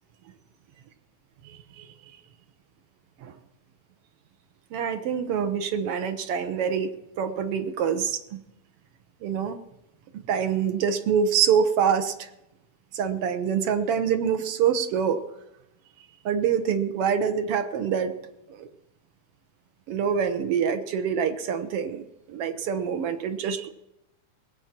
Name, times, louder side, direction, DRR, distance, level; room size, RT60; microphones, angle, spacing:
voice 1, 1.4-1.9 3.2-3.3 4.7-8.4 9.2-9.6 10.3-12.3 12.9-15.2 16.2-18.1 18.5-18.7 19.9-23.7, right 7 dB, 65° right, 8 dB, 1.5 m, -26 dB
20.5 x 8.0 x 5.9 m, 0.87 s
omnidirectional pair, 3.4 m